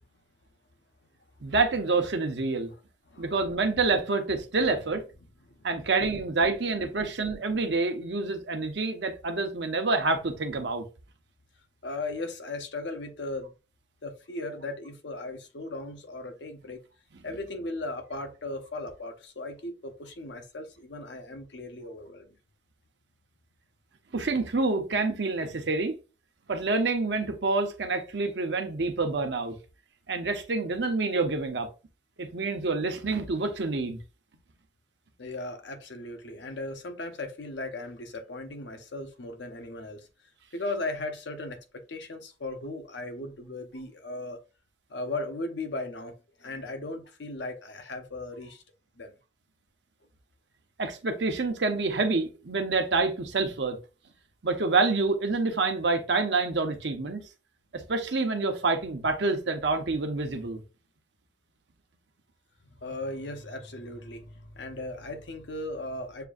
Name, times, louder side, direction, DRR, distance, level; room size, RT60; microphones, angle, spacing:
voice 1, 1.4-2.7 3.2-5.0 5.6-10.8 24.1-25.9 26.5-29.6 30.1-31.7 32.2-34.0 50.8-53.8 54.4-57.2 57.7-60.6, right 3 dB, 70° right, 0.8 m, -27 dB
voice 2, 3.1-3.6 5.4-5.6 11.8-13.5 14.0-16.8 17.2-22.3 35.2-40.1 40.5-41.6 41.9-44.4 44.9-48.6 49.0-49.1 62.8-66.2, left 2 dB, 75° left, 0.8 m, -37 dB
6.7 x 2.5 x 2.4 m
head